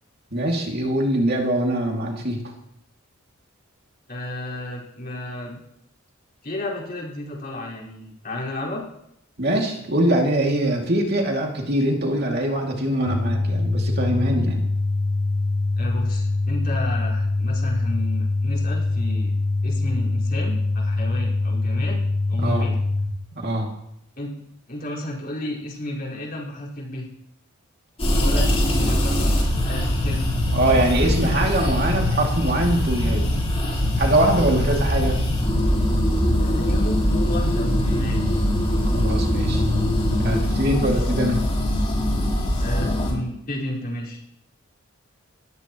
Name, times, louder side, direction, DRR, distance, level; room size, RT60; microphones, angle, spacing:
voice 1, 0.3-2.4 9.4-14.6 22.4-22.6 23.3-23.7 28.3-28.5 30.5-33.4 34.0-35.2 38.9-39.6 40.2-41.4, right 1 dB, 50° right, 0 dB, 2.6 m, -23 dB
voice 2, 4.1-5.6 6.4-8.8 15.8-19.3 19.6-22.0 22.3-22.7 24.2-24.3 24.7-27.1 28.0-30.3 34.3-34.6 36.4-38.2 40.7-40.9 42.6-44.2, left 1 dB, 45° left, -5 dB, 4.8 m, -32 dB
sound 1, 13.1-23.1, left 2 dB, 70° left, 7.8 m, -23 dB
sound 2, 28.0-43.1, left 1 dB, 30° left, 6.7 m, -22 dB
20.5 x 15.0 x 3.1 m, 0.78 s
head